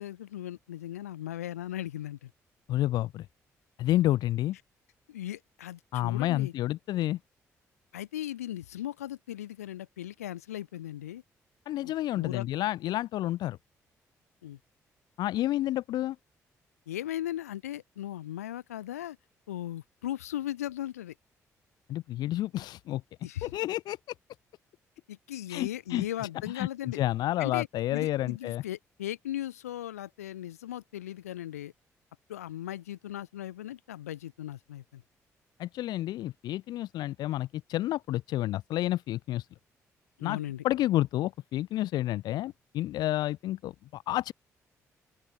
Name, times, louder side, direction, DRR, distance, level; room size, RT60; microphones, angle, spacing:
voice 1, 0.0-2.3 5.1-6.5 7.9-11.2 11.8-12.5 14.4-14.6 16.9-19.2 19.5-21.1 23.2-23.5 25.1-27.0 27.4-31.7 32.3-35.0 40.2-40.6, left 12 dB, 80° left, 3.1 m, -38 dB
voice 2, 2.7-3.2 3.8-4.6 5.9-7.2 11.7-13.6 15.2-16.2 21.9-23.0 23.4-24.0 25.5-26.1 26.5-28.6 35.6-39.5 40.2-40.4 40.6-44.3, left 15 dB, 60° left, 0.7 m, -30 dB
open air
figure-of-eight pair, 40°, 8 cm